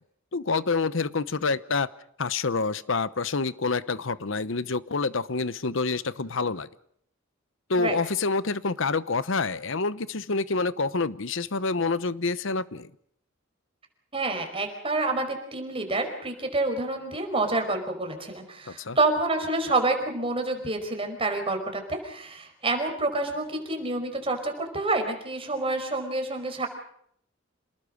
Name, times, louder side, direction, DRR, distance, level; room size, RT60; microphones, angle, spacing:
voice 1, 0.3-1.9 2.2-6.7 7.7-12.9 18.8-19.0, left 4 dB, 65° left, 15 dB, 0.9 m, -27 dB
voice 2, 14.1-26.7, right 2 dB, 30° right, 5 dB, 5.1 m, -28 dB
28.0 x 19.5 x 6.5 m, 0.69 s
head